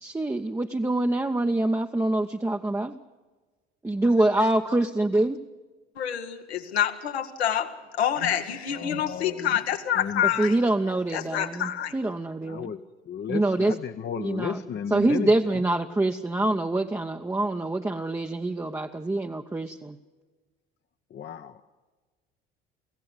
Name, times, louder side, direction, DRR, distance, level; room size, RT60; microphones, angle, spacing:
voice 1, 0.0-3.0 3.8-5.4 10.4-12.7 13.3-13.7 14.2-14.6 14.9-20.0, right 2 dB, 10° right, 3 dB, 0.8 m, -25 dB
voice 2, 6.0-10.6 11.1-11.9, left 10 dB, 80° left, 6 dB, 1.5 m, -27 dB
voice 3, 8.7-9.5 10.0-10.3 12.5-12.8 13.1-15.6 21.1-21.6, left 7 dB, 35° left, 8 dB, 0.9 m, -34 dB
23.5 x 16.0 x 8.0 m, 1.3 s
figure-of-eight pair, 65°, 32 cm